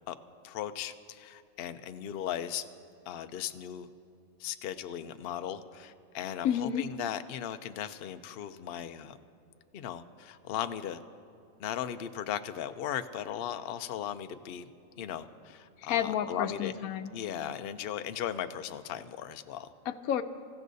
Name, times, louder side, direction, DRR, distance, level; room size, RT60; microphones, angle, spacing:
voice 1, 0.4-2.6 3.1-3.9 4.4-9.2 9.7-11.0 11.6-14.7 15.0-16.7 17.1-19.7, left 10 dB, 60° left, 10 dB, 0.6 m, -37 dB
voice 2, 6.4-6.8 15.9-17.1 19.9-20.2, left 9 dB, 90° left, 10 dB, 1.1 m, -30 dB
25.5 x 15.0 x 2.7 m, 2.5 s
omnidirectional pair, 1.4 m